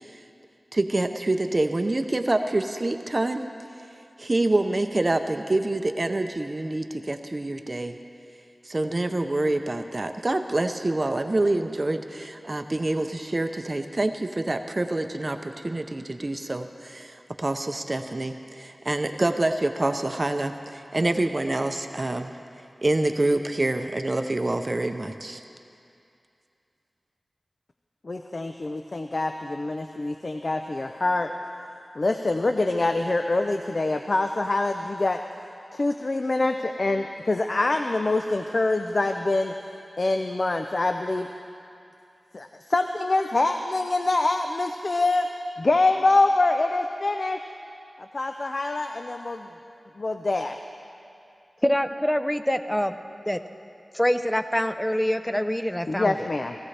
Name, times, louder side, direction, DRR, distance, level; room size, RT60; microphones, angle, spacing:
voice 1, 0.7-3.4 4.2-7.9 8.7-22.3 22.8-25.4, right 2 dB, 40° right, 7 dB, 0.6 m, -26 dB
voice 2, 28.0-31.3 32.0-35.2 35.7-39.5 40.0-41.3 42.3-45.3 45.6-47.4 48.0-49.5 50.0-50.6 55.9-56.5, left 2 dB, 50° left, 6 dB, 0.5 m, -25 dB
voice 3, 51.6-53.0 53.3-53.4 53.9-56.3, equal, 10° left, 9 dB, 0.6 m, -25 dB
17.5 x 15.5 x 3.3 m, 2.5 s
wide cardioid pair, 65°, 0 cm